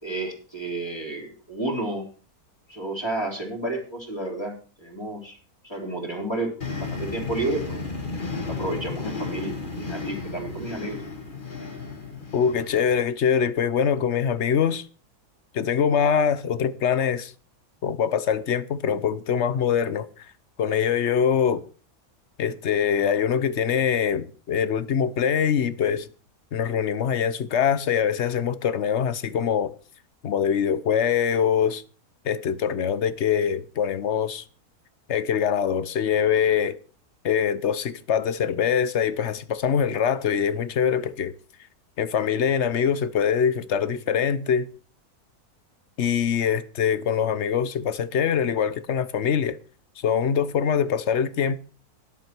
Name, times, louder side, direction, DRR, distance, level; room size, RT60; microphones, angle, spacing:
voice 1, 0.0-2.1 2.7-5.4 5.6-7.8 8.5-11.0, right 2 dB, 15° left, 3.8 m, -31 dB
sound 1, 6.6-13.0, left 4 dB, 35° left, 1.9 m, -33 dB
voice 2, 12.3-14.9 15.5-17.3 17.8-20.3 20.6-21.6 22.4-26.1 26.5-29.7 30.2-31.8 32.2-34.4 35.1-36.8 37.2-41.3 42.0-44.7 46.0-49.6 50.0-51.6, left 7 dB, 55° left, 1.0 m, -23 dB
12.5 x 11.0 x 4.5 m
omnidirectional pair, 1.6 m